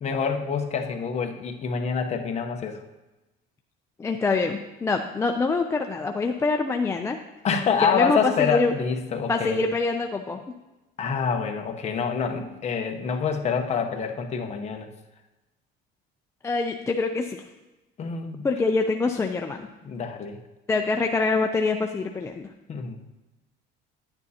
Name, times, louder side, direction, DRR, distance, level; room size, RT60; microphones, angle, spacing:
voice 1, 0.0-2.8 7.4-9.6 11.0-14.9 18.0-18.5 19.8-20.4 22.7-23.0, left 6 dB, 35° left, 4 dB, 0.8 m, -26 dB
voice 2, 4.0-7.2 7.8-8.7 9.3-10.4 16.4-17.4 18.4-19.7 20.7-22.5, left 3 dB, 15° left, 3 dB, 0.3 m, -25 dB
10.5 x 8.9 x 2.8 m, 1.1 s
cardioid pair, 145°, 21 cm